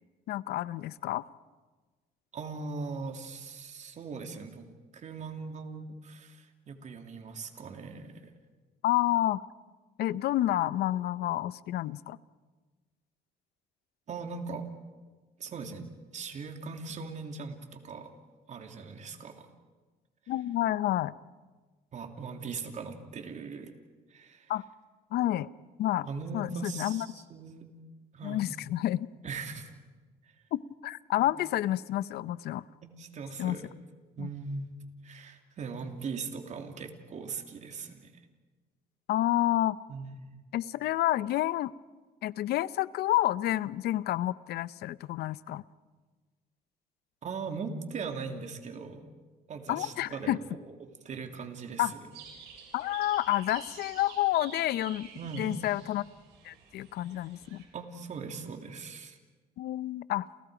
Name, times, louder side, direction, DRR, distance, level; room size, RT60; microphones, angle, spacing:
voice 1, 0.3-1.2 8.8-9.4 10.0-12.2 20.3-21.1 24.5-24.6 25.1-25.5 25.8-26.1 26.3-27.1 28.2-29.1 30.5-32.6 33.4-33.6 34.2-34.3 39.1-39.8 40.5-41.7 42.2-45.6 49.7-50.4 51.8-51.9 52.7-55.1 55.4-56.0 56.4-57.6 59.6-60.3, left 14 dB, 75° left, 18 dB, 0.7 m, -29 dB
voice 2, 2.3-4.7 4.9-8.3 14.1-14.7 15.4-18.1 18.5-19.5 20.3-20.4 21.9-23.7 24.1-24.6 26.0-27.7 28.1-28.5 29.2-29.7 31.2-31.3 32.8-33.7 34.2-34.7 35.0-38.1 39.9-40.3 47.2-49.1 49.5-52.1 55.1-55.6 57.7-59.2, right 4 dB, 45° right, 5 dB, 3.0 m, -40 dB
sound 1, 52.1-57.7, right 6 dB, 85° right, 7.0 m, -49 dB
30.0 x 29.0 x 5.1 m, 1.3 s
cardioid pair, 110°, 17 cm